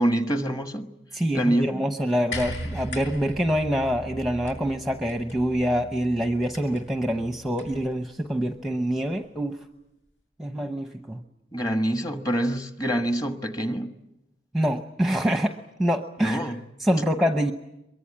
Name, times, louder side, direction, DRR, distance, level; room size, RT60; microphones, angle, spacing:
voice 1, 0.0-0.9 1.3-1.9 11.5-13.9 16.2-16.6, right 1 dB, 20° left, 1.4 m, -26 dB
voice 2, 1.1-9.6 10.4-11.2 14.5-16.4 16.8-17.5, equal, ahead, 0.8 m, -25 dB
sound 1, 2.3-7.9 9.0-9.1, equal, 75° left, 6.2 m, -38 dB
23.0 x 23.0 x 8.7 m
head